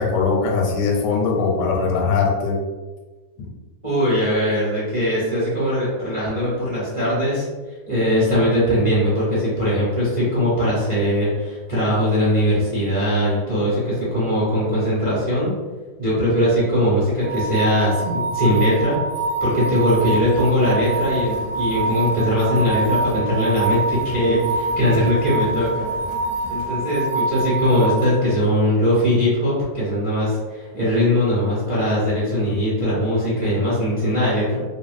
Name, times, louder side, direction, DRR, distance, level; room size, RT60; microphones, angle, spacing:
voice 1, 0.0-2.6, left 4 dB, 85° left, 1 dB, 1.2 m, -20 dB
voice 2, 3.8-7.5 7.9-15.5 16.0-19.0 19.4-25.9 26.5-34.6, equal, 25° right, -8 dB, 0.7 m, -20 dB
sound 1, 17.2-28.1, right 2 dB, 20° left, 0.4 m, -26 dB
sound 2, 19.8-26.8, left 2 dB, 60° left, 0.8 m, -39 dB
2.8 x 2.6 x 2.4 m, 1.3 s
omnidirectional pair, 1.8 m